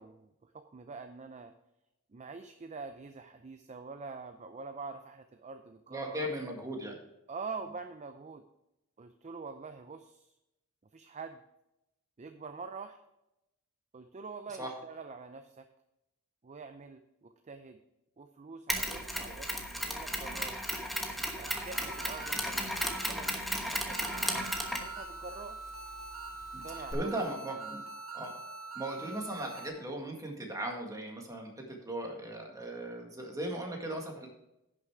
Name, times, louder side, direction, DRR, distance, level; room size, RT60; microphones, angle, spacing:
voice 1, 0.0-1.5 2.1-6.3 7.3-8.4 9.0-10.3 10.9-11.4 12.2-13.0 13.9-15.7 16.4-17.8 18.2-20.6 21.4-25.6 26.6-27.7, right 4 dB, 30° right, 8 dB, 0.5 m, -45 dB
voice 2, 5.9-6.9 14.6-14.7 26.5-26.6 26.9-27.8 28.1-28.3 28.8-31.5 31.8-34.3, right 1 dB, 15° right, 1 dB, 1.9 m, -37 dB
Mechanisms, 18.7-26.9, equal, ahead, 1.2 m, -36 dB
sound 1, 21.4-23.4 23.9-29.7, right 3 dB, 75° right, 2.1 m, -44 dB
10.5 x 6.7 x 4.7 m, 0.89 s
head